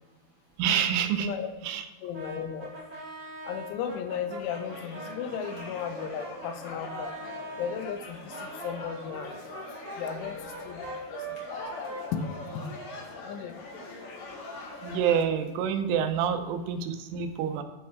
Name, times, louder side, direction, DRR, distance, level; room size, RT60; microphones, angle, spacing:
voice 1, 0.6-1.3 1.6-1.8 14.8-17.6, right 8 dB, 85° right, 7 dB, 3.3 m, -27 dB
voice 2, 1.2-1.5 2.0-2.7 3.4-7.1 7.6-9.5 10.0-12.2 12.6-12.7 13.1-13.8, left 8 dB, 85° left, 7 dB, 3.3 m, -36 dB
Brass instrument, 2.1-7.8 8.3-13.1, right 2 dB, 25° right, 2.7 m, -42 dB
sound 1, 4.4-15.2, left 2 dB, 60° left, 3.7 m, -43 dB
9.2 x 7.0 x 4.6 m, 1.2 s
omnidirectional pair, 5.5 m